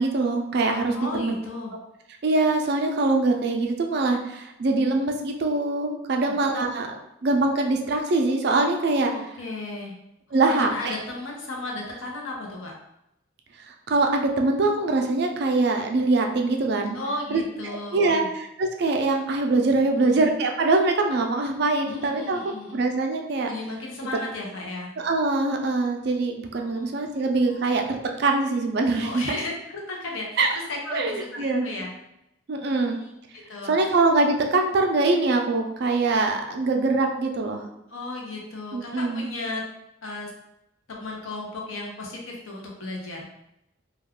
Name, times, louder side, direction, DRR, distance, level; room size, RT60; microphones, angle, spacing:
voice 1, 0.0-1.3 2.2-9.1 10.3-10.9 13.9-17.0 17.3-22.4 22.7-23.5 25.0-29.4 30.4-30.6 30.9-31.7 32.5-33.0 33.7-37.6 38.7-39.3, right 3 dB, 55° right, 3 dB, 0.4 m, -23 dB
voice 2, 0.9-1.7 6.2-6.3 9.4-9.9 10.5-12.7 16.9-18.3 19.8-20.2 21.8-22.8 23.5-24.9 26.6-26.9 27.5-27.6 29.0-31.9 32.5-34.0 37.9-39.6 40.0-40.3 40.9-43.3, left 2 dB, 80° left, -1 dB, 0.7 m, -35 dB
2.3 x 2.3 x 3.4 m, 0.85 s
head